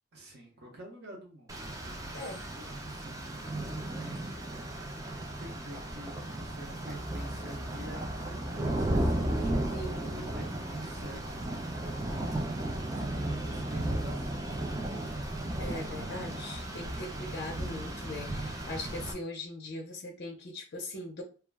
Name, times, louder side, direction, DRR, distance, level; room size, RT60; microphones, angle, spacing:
voice 1, 0.1-4.7 5.2-9.6 10.1-12.1 12.4-14.9, right 1 dB, 50° right, -1 dB, 0.7 m, -49 dB
Rain, 1.5-19.1, right 1 dB, 15° right, 0.3 m, -35 dB
voice 2, 9.7-10.3 15.6-21.2, left 2 dB, 50° left, 1 dB, 0.4 m, -40 dB
2.3 x 2.0 x 3.3 m, 0.37 s
head